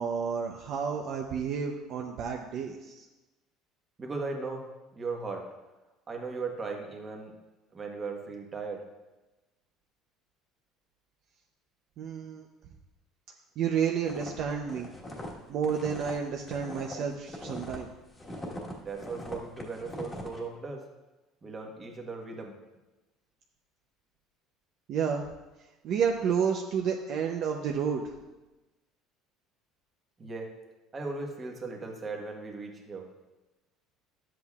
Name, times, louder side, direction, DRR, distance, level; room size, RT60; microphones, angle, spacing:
voice 1, 0.0-3.1 12.0-12.5 13.6-14.9 15.5-17.9 24.9-25.2 25.8-28.0, right 7 dB, 55° right, 2 dB, 0.6 m, -30 dB
voice 2, 4.0-4.7 5.0-5.4 6.1-7.3 7.7-8.8 18.8-20.8 21.4-22.5 30.2-30.5 30.9-33.1, right 4 dB, 25° right, 2 dB, 1.2 m, -37 dB
sound 1, 14.0-17.8 18.1-20.4, left 1 dB, 15° left, 1.4 m, -41 dB
11.5 x 7.7 x 2.4 m, 1.1 s
cardioid pair, 145°, 0 cm